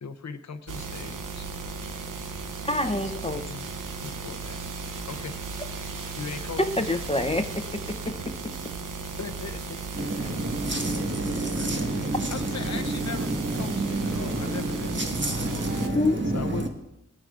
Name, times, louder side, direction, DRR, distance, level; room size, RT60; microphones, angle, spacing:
voice 1, 0.0-1.5 3.0-3.7 4.0-4.6 5.1-5.3 6.2-6.9 9.2-9.8 11.5-11.8 12.3-13.3 13.6-15.1 16.3-16.7, left 5 dB, 60° left, 10 dB, 0.7 m, -39 dB
sound 1, 0.7-15.9, right 4 dB, 85° right, 0.7 m, -36 dB
voice 2, 2.6-3.4 6.6-7.6 8.0-8.1 15.8-16.2, left 2 dB, 20° left, 7 dB, 0.7 m, -26 dB
voice 3, 9.9-16.7, right 2 dB, 35° right, 3 dB, 1.4 m, -29 dB
19.5 x 9.2 x 2.5 m, 0.89 s
wide cardioid pair, 60°, 31 cm